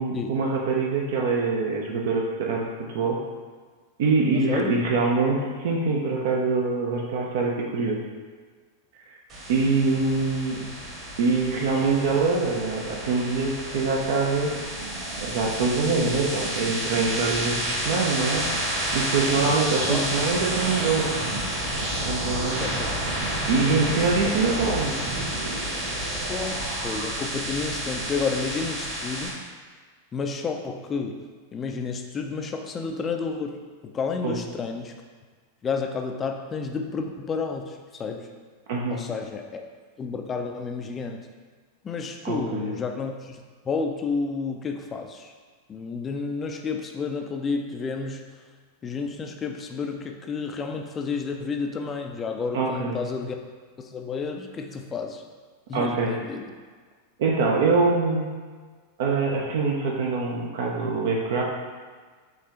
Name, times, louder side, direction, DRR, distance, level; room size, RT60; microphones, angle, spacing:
voice 1, 0.0-2.7 2.9-3.2 4.0-8.0 9.5-10.6 11.2-14.6 15.2-18.5 18.9-21.1 22.0-22.7 23.5-25.0 34.2-34.4 38.7-39.0 42.2-42.8 52.5-53.0 55.7-56.2 57.2-58.3 59.0-61.4, right 4 dB, 55° right, -1 dB, 0.6 m, -24 dB
voice 2, 4.3-4.7 19.9-20.1 22.4-22.9 23.7-24.1 26.3-29.3 30.1-31.2 31.5-34.9 35.6-38.3 38.9-39.6 40.0-41.2 41.8-45.3 45.7-48.2 48.8-53.4 53.8-55.2 55.7-56.4, left 4 dB, 20° left, 4 dB, 0.4 m, -31 dB
sound 1, 9.3-29.3, right 1 dB, 35° right, 1.4 m, -30 dB
5.3 x 3.2 x 3.0 m, 1.5 s
figure-of-eight pair, 90°, 0 cm